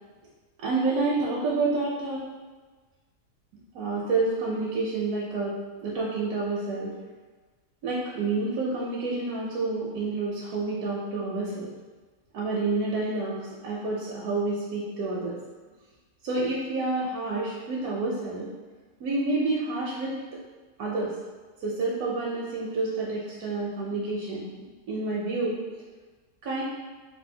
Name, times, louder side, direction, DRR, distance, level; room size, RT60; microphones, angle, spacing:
voice 1, 0.6-2.2 3.7-6.9 7.8-11.7 12.3-15.4 16.2-18.5 19.0-20.2 20.8-21.1 21.6-24.5 24.9-25.6 26.4-26.6, right 3 dB, 75° right, -5 dB, 1.0 m, -29 dB
3.3 x 2.4 x 2.7 m, 1.3 s
omnidirectional pair, 1.6 m